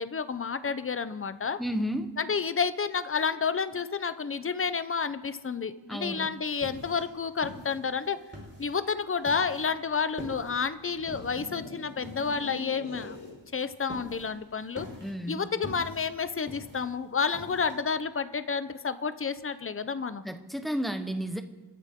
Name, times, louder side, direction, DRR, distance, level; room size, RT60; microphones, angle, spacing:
voice 1, 0.0-1.6 2.2-8.2 8.6-13.2 13.5-14.9 15.3-20.2, left 5 dB, 30° left, 12 dB, 0.7 m, -30 dB
voice 2, 1.6-2.1 5.9-6.3 15.0-15.4 20.2-21.4, equal, ahead, 7 dB, 1.0 m, -32 dB
sound 1, 6.2-17.8, left 1 dB, 25° right, 4.9 m, -45 dB
sound 2, 10.8-13.4, left 2 dB, 60° left, 3.7 m, -43 dB
28.5 x 13.5 x 3.7 m, 1.2 s
wide cardioid pair, 150°, 47 cm